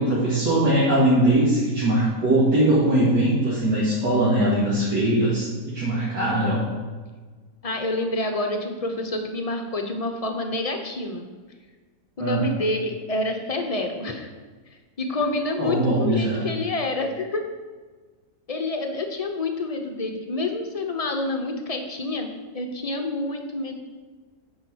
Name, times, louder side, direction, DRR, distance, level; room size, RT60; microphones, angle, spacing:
voice 1, 0.0-6.6 12.2-12.5 15.6-16.4, right 1 dB, 85° right, -9 dB, 2.8 m, -21 dB
voice 2, 7.6-11.3 12.2-14.3 15.0-17.4 18.5-23.8, left 2 dB, 40° left, 4 dB, 0.5 m, -28 dB
10.0 x 4.8 x 6.2 m, 1.4 s
omnidirectional pair, 1.8 m